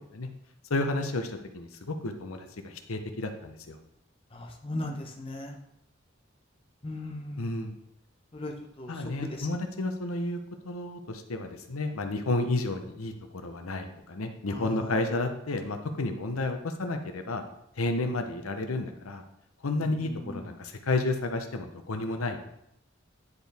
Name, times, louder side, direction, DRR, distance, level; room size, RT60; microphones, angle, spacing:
voice 1, 0.7-3.8 7.4-7.7 8.9-10.4 10.6-17.4 17.8-19.2 19.6-22.4, left 2 dB, 90° left, 6 dB, 0.8 m, -31 dB
voice 2, 4.3-5.5 6.8-7.5 8.3-8.5 8.8-8.9 9.3-9.5 14.5-14.9 20.0-20.4, left 1 dB, 25° left, 2 dB, 0.8 m, -37 dB
9.6 x 4.5 x 3.5 m, 0.79 s
head